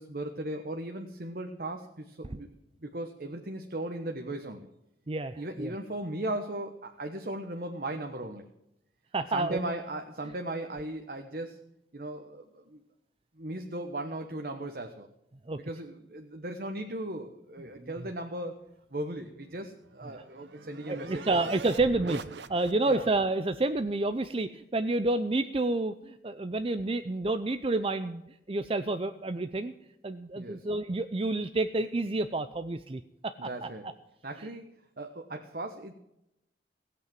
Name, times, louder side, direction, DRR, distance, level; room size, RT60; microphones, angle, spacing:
voice 1, 0.0-2.5 2.8-4.7 5.4-8.4 9.3-11.6 11.9-12.8 13.4-15.1 15.6-18.6 18.9-21.4 22.1-22.2 22.9-23.1 30.3-30.7 33.4-33.9 34.2-35.9, right 1 dB, 55° right, 4 dB, 1.2 m, -37 dB
voice 2, 5.1-5.7 9.1-9.6 15.5-15.6 17.8-17.9 20.9-22.2 22.5-28.2 28.5-29.7 30.0-33.7 34.4-34.5, right 2 dB, 30° right, 10 dB, 0.5 m, -29 dB
sound 1, 19.5-23.2, right 4 dB, 80° right, 0.7 m, -44 dB
16.5 x 8.5 x 7.6 m, 0.85 s
head